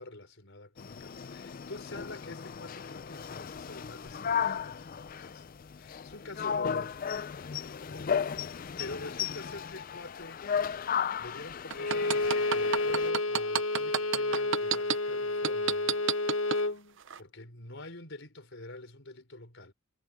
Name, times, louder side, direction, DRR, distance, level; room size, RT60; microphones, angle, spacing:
voice 1, 0.0-7.1 7.9-10.4 11.2-16.0 17.2-19.7, left 2 dB, 60° left, 5.0 m, -46 dB
sound 1, 0.8-13.1, left 7 dB, 40° left, 0.4 m, -35 dB
Bowed string instrument, 11.7-16.8, left 2 dB, 85° left, 1.2 m, -30 dB
sound 2, 11.7-15.0 15.4-16.6 17.1-17.2, right 8 dB, 60° right, 0.7 m, -28 dB
head